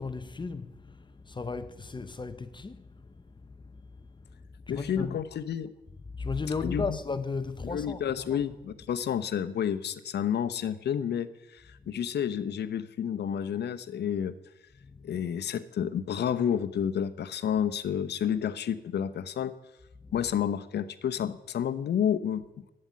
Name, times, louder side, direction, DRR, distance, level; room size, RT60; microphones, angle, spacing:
voice 1, 0.0-5.3 6.1-8.5 14.8-15.2 20.0-20.3, left 4 dB, 25° left, 0.8 m, -36 dB
voice 2, 4.7-5.7 6.6-7.0 7.7-14.4 15.0-19.5 20.1-22.7, left 8 dB, 80° left, 0.8 m, -30 dB
11.5 x 8.8 x 9.4 m
cardioid pair, 100°, 17 cm